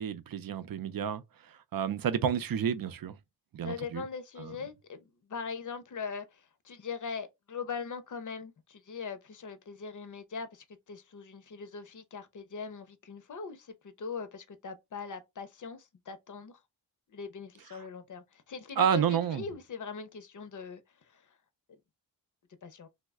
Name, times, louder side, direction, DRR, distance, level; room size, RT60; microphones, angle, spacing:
voice 1, 0.0-3.1 3.5-4.0 4.4-4.5 18.8-19.4, right 8 dB, 55° right, 0.5 m, -30 dB
voice 2, 3.6-16.6 17.1-21.4 22.6-22.9, left 5 dB, 45° left, 0.6 m, -41 dB
3.1 x 2.1 x 3.4 m
wide cardioid pair, 110°, 43 cm